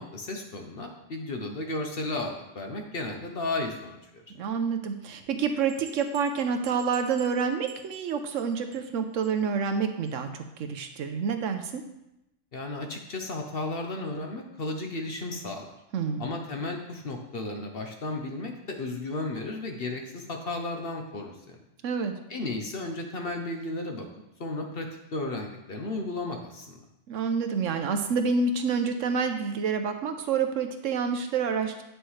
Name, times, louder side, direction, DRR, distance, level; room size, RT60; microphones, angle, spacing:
voice 1, 0.0-4.2 12.5-15.8 16.2-21.6 22.3-24.1 24.4-26.8, left 2 dB, 50° left, 3 dB, 0.9 m, -34 dB
voice 2, 4.4-11.8 15.9-16.3 21.8-22.1 27.1-31.8, right 5 dB, 70° right, 6 dB, 1.0 m, -28 dB
sound 1, 5.7-8.4 8.7-9.0 9.2-9.3 9.7-9.8 10.1-10.2, right 7 dB, 90° right, 1.5 m, -49 dB
9.1 x 6.3 x 3.2 m, 0.89 s
omnidirectional pair, 1.4 m